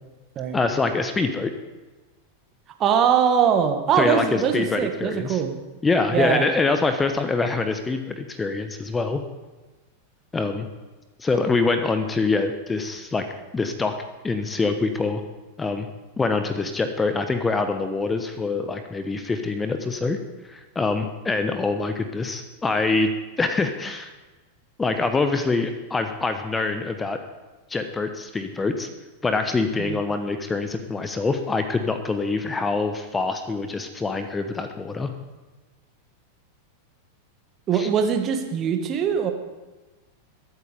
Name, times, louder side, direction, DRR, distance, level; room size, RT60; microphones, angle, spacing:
voice 1, 0.5-1.5 4.0-5.4 5.8-9.2 10.3-10.7 11.2-13.2 13.5-13.9 14.2-15.2 15.6-15.9 16.2-20.2 20.4-23.1 23.4-24.1 24.8-27.2 27.7-28.9 29.2-35.1 37.7-37.9, left 3 dB, 15° left, 8 dB, 1.1 m, -25 dB
voice 2, 2.8-5.6 6.1-6.5 29.8-30.0 37.7-39.3, right 7 dB, 30° right, 5 dB, 1.8 m, -22 dB
22.0 x 8.8 x 5.2 m, 1.2 s
figure-of-eight pair, 90°, 0 cm